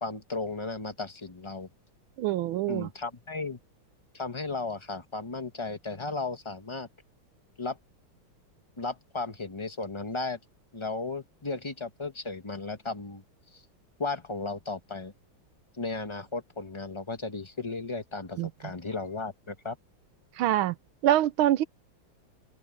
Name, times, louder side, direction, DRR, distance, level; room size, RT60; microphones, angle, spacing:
voice 1, 0.0-1.7 2.7-3.6 4.1-6.9 7.6-7.8 8.8-10.4 10.7-13.2 13.5-13.6 14.0-15.1 15.7-19.8, left 3 dB, 20° left, 1.0 m, -35 dB
voice 2, 2.2-2.9 18.4-18.5 20.3-20.7 21.0-21.6, right 13 dB, 80° right, 1.5 m, -25 dB
omnidirectional pair, 2.3 m